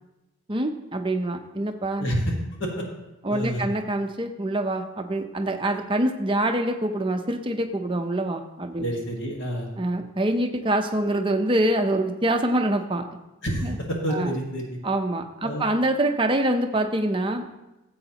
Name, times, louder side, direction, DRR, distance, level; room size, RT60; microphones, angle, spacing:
voice 1, 0.5-2.1 3.2-8.8 9.8-13.1 13.6-13.8 14.1-14.3 14.8-17.4, right 1 dB, 20° right, 4 dB, 0.6 m, -25 dB
voice 2, 2.0-2.3 2.6-2.9 3.3-3.7 8.8-9.7 13.4-14.6 15.4-15.6, equal, 50° left, -1 dB, 1.7 m, -28 dB
15.0 x 7.9 x 2.9 m, 0.99 s
head